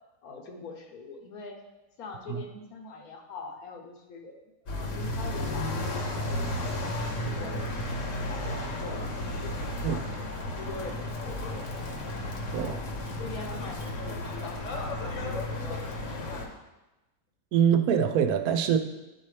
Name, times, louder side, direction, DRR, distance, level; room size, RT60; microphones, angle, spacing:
voice 1, 0.2-1.6 2.0-4.3 4.7-11.7 12.4-16.6, left 3 dB, 80° left, 2 dB, 1.4 m, -44 dB
sound 1, 4.7-16.5, left 1 dB, 60° left, 1.2 m, -33 dB
voice 2, 17.5-18.8, right 8 dB, 85° right, 7 dB, 1.1 m, -24 dB
10.5 x 4.3 x 3.3 m, 1.0 s
omnidirectional pair, 1.5 m